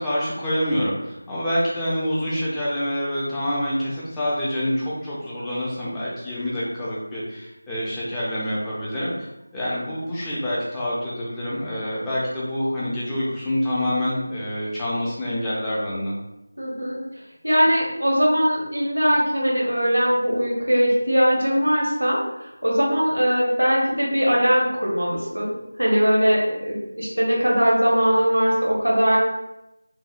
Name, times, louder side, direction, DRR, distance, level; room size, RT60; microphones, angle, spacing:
voice 1, 0.0-9.3 9.5-16.1, equal, 5° left, -9 dB, 0.4 m, -26 dB
voice 2, 16.6-17.0 17.4-25.5 25.8-29.2, equal, 90° right, -4 dB, 0.7 m, -20 dB
2.7 x 2.0 x 2.3 m, 0.91 s
figure-of-eight pair, 170°, 0 cm